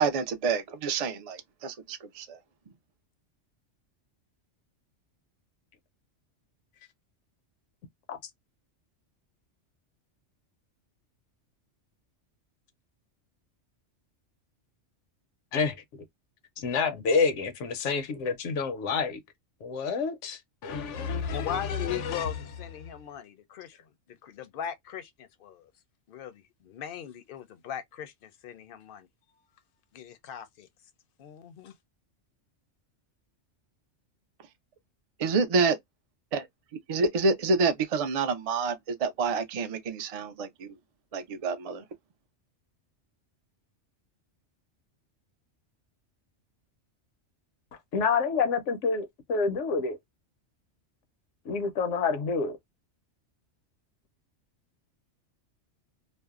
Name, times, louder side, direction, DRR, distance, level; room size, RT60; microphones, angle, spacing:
voice 1, 0.0-2.4 35.2-35.8 36.3-36.4 36.9-40.7 41.1-41.8, right 4 dB, 65° right, 0.3 m, -28 dB
voice 2, 16.6-19.2 19.6-22.3 47.9-50.0 51.5-52.6, left 5 dB, 85° left, 0.9 m, -28 dB
voice 3, 21.3-23.8 24.1-25.7 26.1-29.1 29.9-30.7 31.2-31.7, left 9 dB, 60° left, 0.6 m, -39 dB
2.6 x 2.0 x 2.3 m
omnidirectional pair, 1.2 m